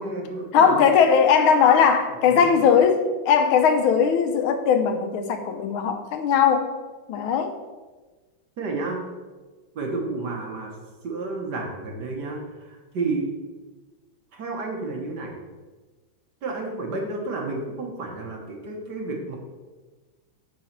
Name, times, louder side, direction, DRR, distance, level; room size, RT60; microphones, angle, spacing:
voice 1, 0.0-0.9 2.0-2.6 8.6-9.0 9.7-10.7 11.0-13.3 14.3-15.3 16.4-19.4, right 3 dB, 60° right, 1 dB, 1.8 m, -31 dB
voice 2, 0.5-6.7 7.1-7.5, left 7 dB, 90° left, 7 dB, 1.6 m, -19 dB
8.9 x 3.9 x 5.9 m, 1.3 s
omnidirectional pair, 2.2 m